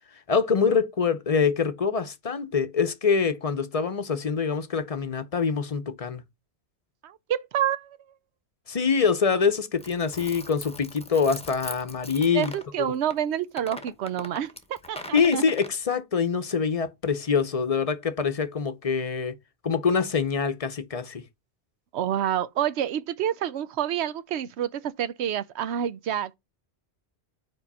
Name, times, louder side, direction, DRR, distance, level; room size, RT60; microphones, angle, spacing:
voice 1, 0.3-6.2 8.7-12.5 12.8-12.9 15.1-19.3 19.6-21.2, left 5 dB, 40° left, 0.7 m, -25 dB
voice 2, 7.0-8.0 12.3-15.4 21.9-26.3, right 10 dB, 80° right, 0.9 m, -28 dB
sound 1, 9.8-12.7 13.1-13.2 13.6-15.7, left 1 dB, 5° left, 0.8 m, -40 dB
5.0 x 4.6 x 5.3 m
omnidirectional pair, 1.1 m